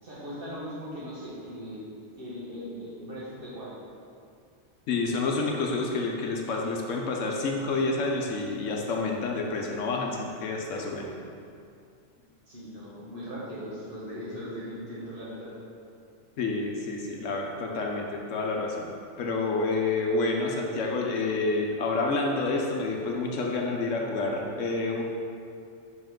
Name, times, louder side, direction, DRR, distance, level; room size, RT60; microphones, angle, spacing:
voice 1, 0.0-1.8 2.2-3.8 10.7-11.1 12.5-15.5, equal, 45° right, -7 dB, 1.7 m, -39 dB
voice 2, 4.9-11.1 16.4-18.9 19.2-25.0, left 3 dB, 80° left, 0 dB, 1.1 m, -28 dB
6.0 x 5.4 x 3.7 m, 2.4 s
omnidirectional pair, 1.3 m